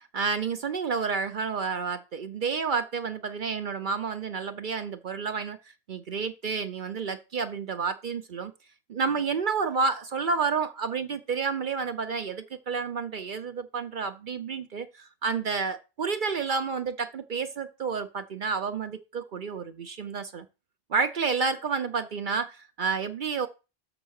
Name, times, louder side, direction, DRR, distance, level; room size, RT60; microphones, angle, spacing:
voice 1, 0.0-5.6 5.9-8.5 8.9-20.5 20.9-23.5, right 5 dB, 55° right, 8 dB, 0.7 m, -30 dB
6.6 x 4.9 x 6.3 m, 0.30 s
omnidirectional pair, 1.1 m